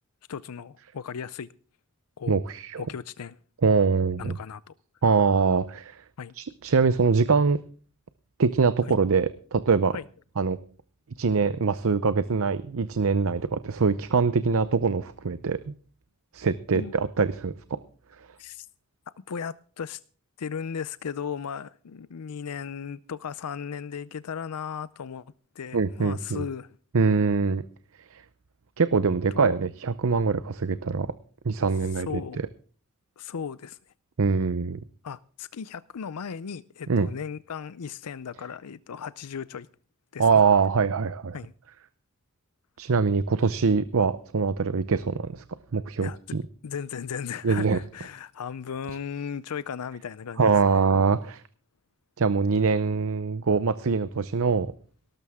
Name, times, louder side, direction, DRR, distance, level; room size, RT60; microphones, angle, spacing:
voice 1, 0.3-1.5 2.2-2.4 2.8-3.4 4.2-4.7 6.2-6.3 8.8-9.0 9.9-10.0 16.7-16.9 18.4-18.7 19.2-20.0 20.4-25.3 25.5-26.8 29.3-29.6 31.9-32.4 33.2-33.8 35.0-39.7 40.1-40.3 41.3-41.5 46.0-46.2 46.6-50.5, left 7 dB, 85° left, 0.5 m, -36 dB
voice 2, 2.3-2.8 3.6-4.4 5.0-6.0 6.4-7.6 8.4-10.0 10.4-10.6 11.2-15.7 16.3-17.5 25.7-26.4 26.9-27.6 28.1-28.2 28.8-31.1 31.4-32.1 34.2-34.8 36.9-37.1 40.2-41.4 42.8-45.4 45.7-46.4 47.4-47.8 50.4-51.4 52.2-54.7, right 5 dB, 65° right, 0.7 m, -23 dB
18.5 x 12.5 x 3.6 m
head